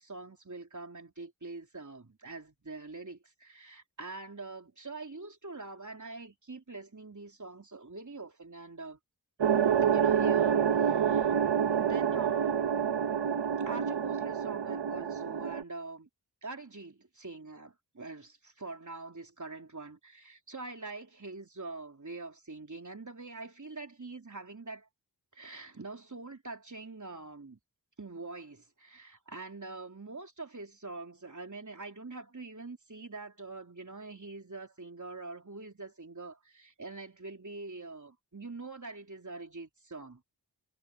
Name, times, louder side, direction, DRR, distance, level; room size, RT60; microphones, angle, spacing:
voice 1, 0.0-9.0 9.8-11.4 11.7-12.6 13.6-16.1 16.4-24.9 25.3-27.6 28.0-40.2, right 3 dB, 40° right, 3.6 m, -44 dB
sound 1, 9.4-15.6, right 8 dB, 70° right, 1.0 m, -27 dB
wide cardioid pair, 50°, 44 cm